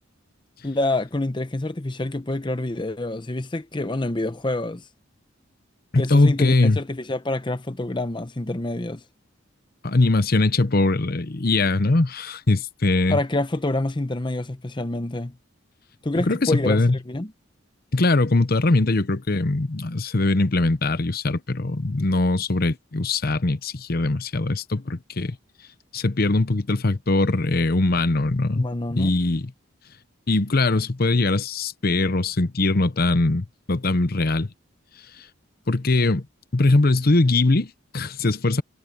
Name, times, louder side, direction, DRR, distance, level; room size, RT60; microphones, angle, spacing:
voice 1, 0.6-4.8 5.9-9.0 13.1-15.3 16.0-17.3 28.5-29.2, left 2 dB, 25° left, 0.8 m, -27 dB
voice 2, 5.9-6.8 9.8-13.2 16.1-16.9 17.9-25.4 25.9-28.6 29.0-29.5 30.3-34.5 35.2-35.3 35.7-36.2 36.5-38.6, left 2 dB, 50° left, 0.9 m, -21 dB
head